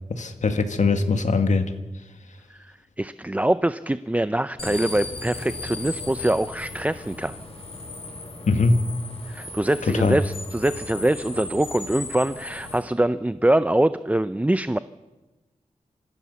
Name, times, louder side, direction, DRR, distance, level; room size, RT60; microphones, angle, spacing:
voice 1, 0.1-1.7 8.5-8.8 9.9-10.2, left 3 dB, 75° left, 7 dB, 1.9 m, -21 dB
voice 2, 2.6-7.4 9.3-14.8, right 1 dB, 10° right, 13 dB, 0.6 m, -24 dB
sound 1, 4.6-12.8, left 2 dB, 50° left, 5.2 m, -36 dB
25.5 x 15.5 x 7.0 m, 1.1 s
wide cardioid pair, 75°, 13 cm